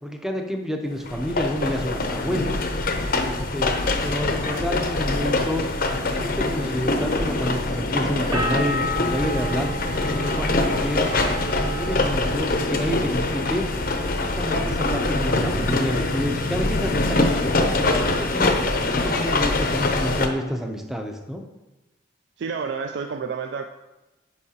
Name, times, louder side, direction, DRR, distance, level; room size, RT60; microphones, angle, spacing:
voice 1, 0.0-2.6 3.2-3.7 4.0-5.7 6.1-9.7 10.0-11.1 11.5-13.7 14.0-17.7 18.0-18.6 18.9-21.4, equal, ahead, 4 dB, 0.5 m, -29 dB
sound 1, 1.0-20.3, left 2 dB, 45° left, 0.6 m, -24 dB
sound 2, 1.1-13.3, right 1 dB, 75° right, 1.1 m, -42 dB
sound 3, 8.3-14.0 14.3-15.0, right 1 dB, 20° right, 1.1 m, -33 dB
voice 2, 22.4-23.7, right 5 dB, 55° right, 5 dB, 0.3 m, -29 dB
8.5 x 5.4 x 2.8 m, 1.0 s
head